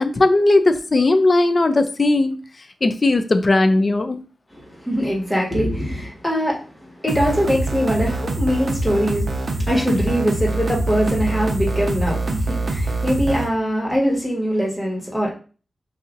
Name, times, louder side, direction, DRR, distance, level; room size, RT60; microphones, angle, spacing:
voice 1, 0.0-2.4 2.8-4.2 9.6-9.7, left 2 dB, 40° left, 9 dB, 0.5 m, -17 dB
voice 2, 4.5-15.3, equal, 10° left, -2 dB, 1.6 m, -22 dB
sound 1, 7.1-13.5, right 2 dB, 50° right, 0.9 m, -24 dB
6.5 x 2.7 x 2.6 m, 0.37 s
wide cardioid pair, 105°, 0 cm